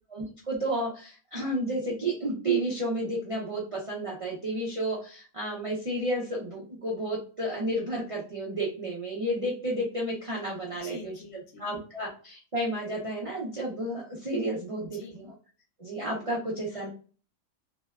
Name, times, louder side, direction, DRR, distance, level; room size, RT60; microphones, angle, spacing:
voice 1, 0.1-11.2 11.6-15.3 15.8-16.9, right 1 dB, 50° right, -4 dB, 0.4 m, -31 dB
voice 2, 10.8-11.7 14.9-15.2 16.7-16.9, left 3 dB, 65° left, 2 dB, 1.0 m, -46 dB
2.6 x 2.1 x 2.2 m, 0.38 s
omnidirectional pair, 1.4 m